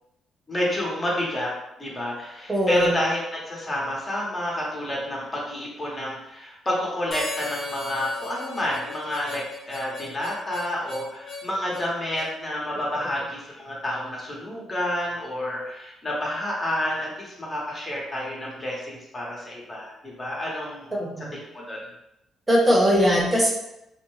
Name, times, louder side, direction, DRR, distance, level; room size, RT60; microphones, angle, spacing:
voice 1, 0.5-1.5 1.8-20.9 21.5-21.8, left 1 dB, 25° left, -4 dB, 0.9 m, -29 dB
voice 2, 2.5-2.9 20.9-21.3 22.5-23.5, equal, 20° right, -4 dB, 0.8 m, -20 dB
Harmonica, 7.1-12.3, left 3 dB, 55° left, 0.9 m, -37 dB
2.6 x 2.1 x 3.0 m, 0.85 s
cardioid pair, 90°, 0 cm